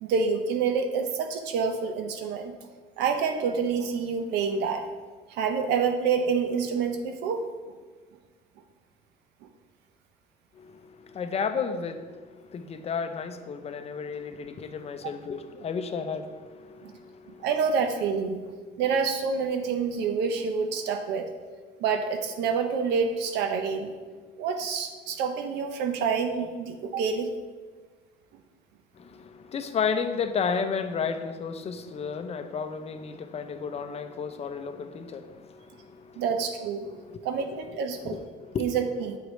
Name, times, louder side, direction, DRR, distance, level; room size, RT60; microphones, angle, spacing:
voice 1, 0.0-2.5 3.0-4.8 5.3-7.5 16.8-16.9 17.4-18.4 18.8-21.3 21.8-23.9 24.4-27.3 36.2-36.9 37.2-38.2 38.6-39.2, right 5 dB, 85° right, 6 dB, 0.6 m, -27 dB
voice 2, 10.5-17.5 29.0-36.2 36.8-37.2 38.0-38.6, left 6 dB, 40° left, 8 dB, 0.5 m, -33 dB
7.9 x 4.8 x 3.1 m, 1.4 s
cardioid pair, 110°, 17 cm